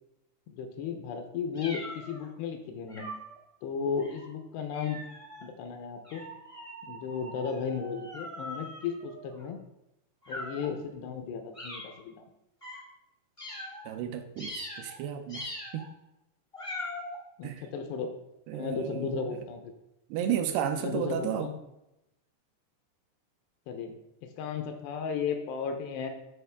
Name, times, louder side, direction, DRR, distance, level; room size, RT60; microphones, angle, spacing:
voice 1, 0.5-3.1 3.6-5.0 5.4-6.3 6.9-9.6 10.3-12.3 17.4-18.1 18.5-19.7 20.7-21.5 23.7-24.0 24.2-26.1, left 6 dB, 80° left, 6 dB, 2.9 m, -35 dB
sound 1, 1.5-2.3 2.9-3.4 4.0-4.3 4.7-5.4 6.0-9.5 10.2-10.7 11.5-12.0 12.6-12.8 13.4-13.9 14.4-15.0 15.3-15.9 16.5-17.2, left 1 dB, 35° left, 0.4 m, -41 dB
voice 2, 13.9-15.9 17.4-17.6 18.5-19.4 20.1-21.5, right 9 dB, 80° right, 7 dB, 2.5 m, -33 dB
13.0 x 4.5 x 3.5 m, 0.90 s
omnidirectional pair, 4.9 m